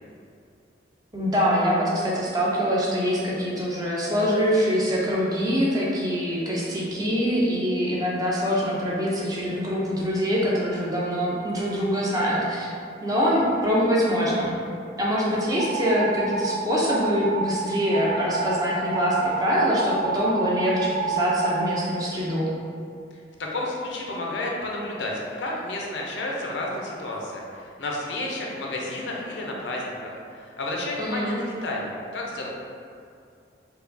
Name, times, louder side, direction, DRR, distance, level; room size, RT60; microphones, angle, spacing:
voice 1, 1.1-12.7 13.0-14.6 15.0-22.5 31.0-31.4, equal, 20° right, -5 dB, 0.5 m, -24 dB
sound 1, 15.6-16.5 16.9-17.6 17.9-18.5 18.9-21.6, right 4 dB, 80° right, 0.4 m, -28 dB
voice 2, 23.4-32.5, left 2 dB, 75° left, -2 dB, 0.6 m, -31 dB
4.5 x 2.3 x 2.6 m, 2.4 s
head